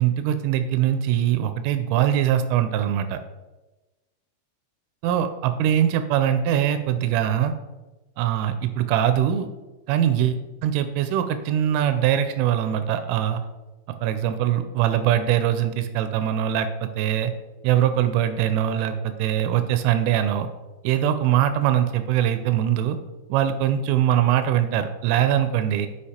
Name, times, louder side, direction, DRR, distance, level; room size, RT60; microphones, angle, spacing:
voice 1, 0.0-3.2 5.0-7.5 8.2-9.5 9.9-10.3 10.6-13.4 14.0-17.3 17.6-20.5 20.8-23.0 23.3-25.9, right 10 dB, 85° right, 9 dB, 2.9 m, -22 dB
8.4 x 5.0 x 4.3 m, 1.1 s
omnidirectional pair, 5.7 m